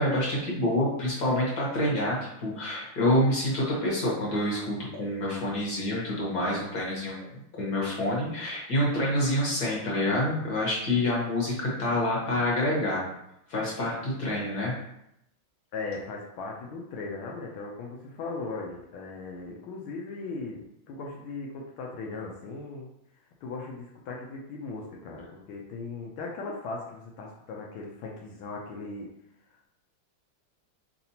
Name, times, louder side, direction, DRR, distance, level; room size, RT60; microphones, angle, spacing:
voice 1, 0.0-13.0 13.5-14.7, left 1 dB, 50° left, -5 dB, 1.6 m, -27 dB
voice 2, 15.7-22.9 23.4-29.1, left 3 dB, 80° left, -1 dB, 1.4 m, -38 dB
4.2 x 3.9 x 2.8 m, 0.80 s
omnidirectional pair, 2.4 m